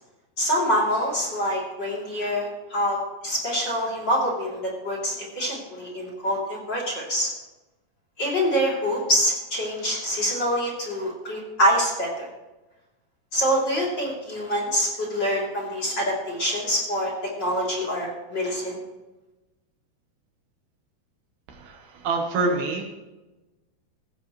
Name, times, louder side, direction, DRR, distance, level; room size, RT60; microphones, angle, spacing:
voice 1, 0.4-7.3 8.2-12.3 13.3-17.1 17.4-18.8, equal, 25° left, -3 dB, 3.4 m, -25 dB
voice 2, 21.5-22.8, right 3 dB, 70° right, 3 dB, 3.0 m, -26 dB
17.0 x 15.0 x 3.2 m, 1.1 s
omnidirectional pair, 4.8 m